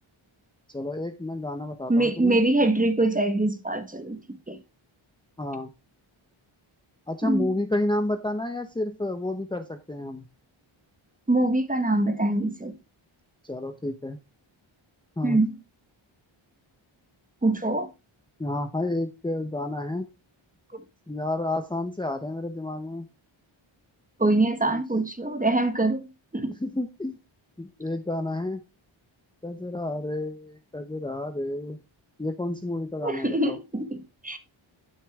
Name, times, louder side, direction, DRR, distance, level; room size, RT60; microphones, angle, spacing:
voice 1, 0.7-2.4 5.4-5.7 7.1-10.3 13.4-14.2 15.2-15.4 18.4-20.0 21.1-23.1 24.6-24.8 26.6-27.2 27.6-28.6 29.4-31.8 32.2-33.6, left 2 dB, 10° left, 0.8 m, -30 dB
voice 2, 1.9-4.2 4.5-4.6 7.2-7.5 11.3-12.7 15.2-15.5 17.4-17.9 20.7-20.8 24.2-26.1 26.3-26.5 33.0-34.4, right 2 dB, 15° right, 1.3 m, -24 dB
12.0 x 6.2 x 3.6 m
wide cardioid pair, 125°, 49 cm